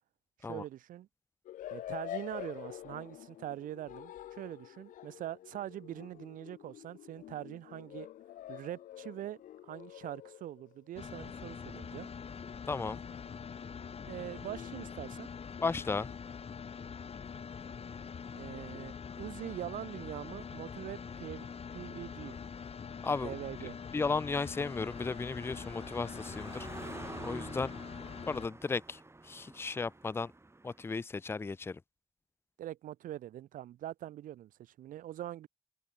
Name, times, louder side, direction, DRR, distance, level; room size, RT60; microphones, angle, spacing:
voice 1, 0.4-1.1 1.7-8.1 8.5-12.1 14.1-15.3 18.3-22.4 23.2-23.8 32.6-35.5, right 13 dB, 80° right, 2.1 m, -43 dB
sound 1, 1.5-10.9 12.6-15.0, left 13 dB, 75° left, 0.8 m, -48 dB
sound 2, 11.0-28.5, left 6 dB, 45° left, 2.4 m, -44 dB
voice 2, 12.7-13.0 15.6-16.1 23.0-23.3 23.9-26.7 27.2-27.7 28.3-30.3 30.6-31.8, left 4 dB, 15° left, 0.4 m, -35 dB
Car passing by, 20.0-30.9, right 2 dB, 20° right, 3.1 m, -50 dB
cardioid pair, 70°, 14 cm